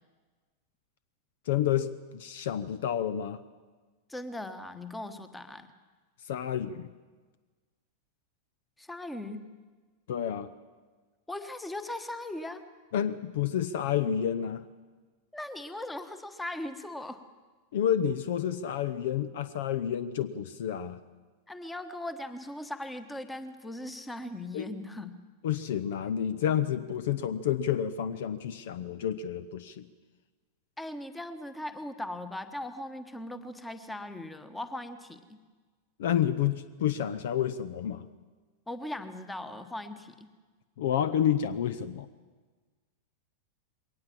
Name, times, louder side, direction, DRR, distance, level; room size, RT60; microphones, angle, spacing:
voice 1, 1.5-3.4 6.3-6.9 10.1-10.5 12.9-14.6 17.7-21.0 24.5-24.7 25.4-29.9 36.0-38.1 40.8-42.1, left 9 dB, 55° left, 15 dB, 0.7 m, -29 dB
voice 2, 4.1-5.7 8.8-9.5 11.3-12.7 15.3-17.3 21.5-25.1 30.8-35.4 38.7-40.3, left 1 dB, 5° left, 11 dB, 1.3 m, -39 dB
22.0 x 18.5 x 7.5 m, 1.4 s
figure-of-eight pair, 90°, 0 cm